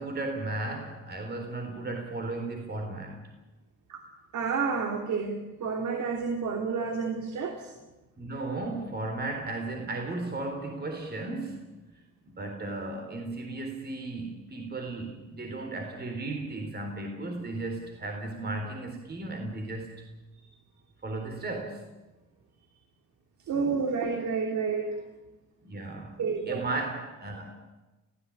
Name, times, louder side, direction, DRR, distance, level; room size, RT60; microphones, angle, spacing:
voice 1, 0.0-3.2 8.2-11.7 12.3-20.1 21.0-21.8 23.5-23.8 25.6-26.2 26.5-27.5, right 2 dB, 35° right, 3 dB, 4.0 m, -35 dB
voice 2, 4.3-7.7 23.5-25.0 26.2-26.6, right 5 dB, 70° right, 2 dB, 3.3 m, -30 dB
28.5 x 16.5 x 8.9 m, 1.1 s
cardioid pair, 90°, 30 cm